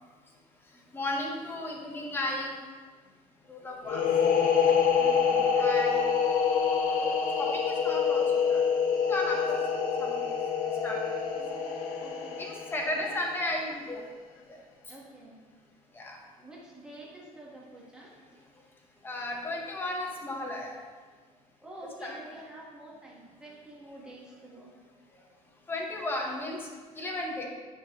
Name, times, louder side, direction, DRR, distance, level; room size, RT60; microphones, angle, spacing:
voice 1, 0.9-2.5 3.5-4.0 5.6-6.4 7.0-8.6 9.1-9.6 10.0-10.4 10.8-11.1 12.4-14.0 14.5-14.6 14.9-15.0 15.9-16.2 19.0-20.7 22.0-22.2 25.7-26.7 26.9-27.4, left 1 dB, 15° left, 0 dB, 0.8 m, -34 dB
sound 1, 3.8-13.4, left 6 dB, 75° left, 0.7 m, -26 dB
voice 2, 5.0-5.5 11.4-12.4 12.9-13.2 14.9-15.4 16.4-18.1 21.6-24.7 27.3-27.4, right 1 dB, 5° right, -5 dB, 1.2 m, -48 dB
9.7 x 3.8 x 2.9 m, 1.5 s
cardioid pair, 170°, 14 cm